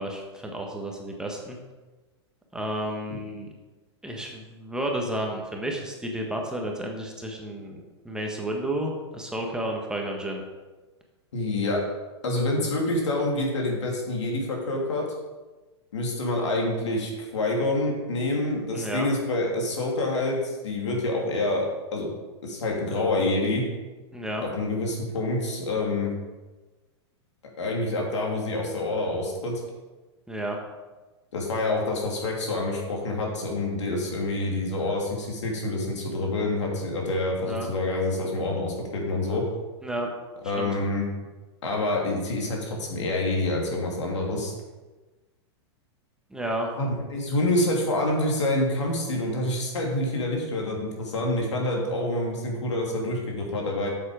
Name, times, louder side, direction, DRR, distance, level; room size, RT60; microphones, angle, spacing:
voice 1, 0.0-1.6 2.5-3.5 4.0-10.4 18.7-19.1 24.1-24.4 30.3-30.6 37.4-37.7 39.8-40.1 40.4-40.7 46.3-46.7, right 1 dB, 5° right, 0 dB, 1.4 m, -31 dB
voice 2, 11.3-11.8 12.2-15.0 15.9-21.6 21.9-22.1 22.4-23.7 24.4-26.1 27.6-29.6 31.3-39.4 40.4-41.1 41.6-44.5 46.8-53.9, left 2 dB, 85° left, -1 dB, 2.8 m, -27 dB
8.4 x 7.2 x 5.1 m, 1.2 s
hypercardioid pair, 125°, 15 cm